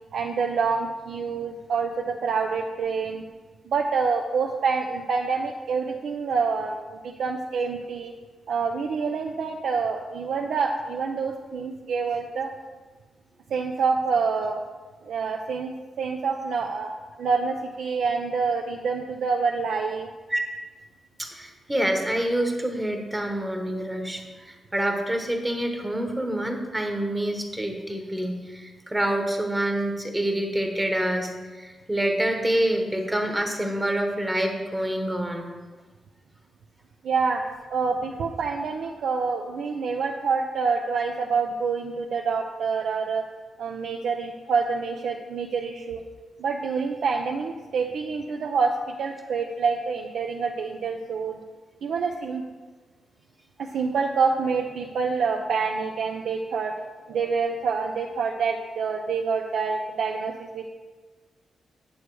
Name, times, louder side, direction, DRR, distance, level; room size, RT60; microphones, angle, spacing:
voice 1, 0.1-3.2 3.7-8.1 8.5-12.5 13.5-14.6 15.0-20.1 37.0-37.4 37.7-43.3 43.6-46.0 46.4-51.4 51.8-52.4 53.6-60.7, right 5 dB, 75° right, 2 dB, 0.7 m, -27 dB
voice 2, 21.2-35.5 39.8-39.9, right 1 dB, 10° right, 3 dB, 1.0 m, -27 dB
8.8 x 8.2 x 4.7 m, 1.3 s
wide cardioid pair, 160°, 0 cm